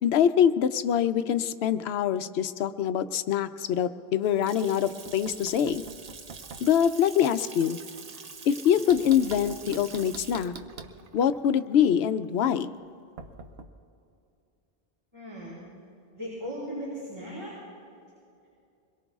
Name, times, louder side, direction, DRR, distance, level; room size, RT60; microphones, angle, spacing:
voice 1, 0.0-5.8 6.6-7.8 8.5-10.5 11.1-12.7, left 9 dB, 90° left, 12 dB, 0.8 m, -24 dB
Water tap faucet / Sink (filling or washing) / Splash splatter, 4.0-12.9, right 5 dB, 45° right, 0.7 m, -46 dB
Knock, 4.6-6.7 8.9-11.0 13.2-13.7, right 4 dB, 80° right, 1.0 m, -45 dB
voice 2, 15.1-15.6 16.1-17.5, equal, 30° right, -9 dB, 4.5 m, -37 dB
24.5 x 21.5 x 2.4 m, 2.5 s
omnidirectional pair, 1.0 m